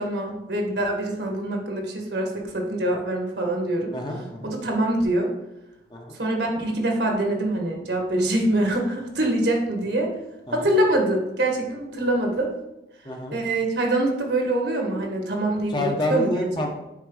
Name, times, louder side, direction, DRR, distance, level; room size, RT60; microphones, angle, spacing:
voice 1, 0.0-3.9 4.4-5.3 6.1-10.1 10.5-12.5 13.3-16.5, right 1 dB, 65° right, 2 dB, 1.6 m, -24 dB
voice 2, 3.9-4.5 5.9-6.2 10.5-10.7 13.0-13.4 15.7-16.7, left 1 dB, 25° left, 1 dB, 1.0 m, -28 dB
7.4 x 5.3 x 3.9 m, 0.94 s
head